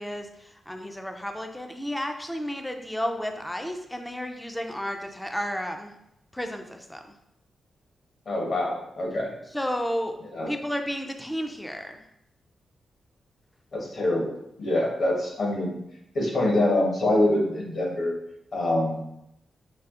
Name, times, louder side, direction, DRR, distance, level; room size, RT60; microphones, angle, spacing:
voice 1, 0.0-5.9 6.3-7.0 9.5-10.2 10.5-12.0, equal, 5° left, 4 dB, 0.3 m, -32 dB
voice 2, 8.3-9.3 10.3-10.5 13.7-15.8 16.1-18.1 18.5-19.0, left 1 dB, 50° left, -1 dB, 1.1 m, -25 dB
4.6 x 2.7 x 3.6 m, 0.80 s
wide cardioid pair, 170°, 0 cm